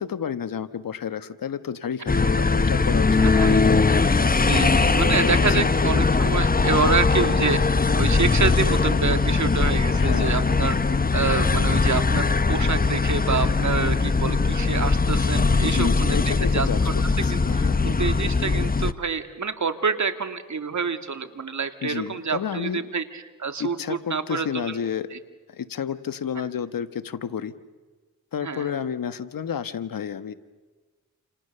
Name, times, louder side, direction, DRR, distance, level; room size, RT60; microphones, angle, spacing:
voice 1, 0.0-3.8 5.2-5.7 9.9-10.6 15.6-17.9 21.8-22.8 23.6-25.1 25.5-27.5 28.3-30.3, left 8 dB, 70° left, 12 dB, 1.4 m, -31 dB
sound 1, 2.1-18.9, left 4 dB, 25° left, 1.0 m, -21 dB
voice 2, 3.2-3.6 4.4-10.8 11.1-16.7 17.0-24.8 25.1-25.2 28.4-28.8, right 5 dB, 55° right, 8 dB, 2.4 m, -27 dB
29.0 x 28.5 x 6.8 m, 1.3 s
cardioid pair, 50°, 35 cm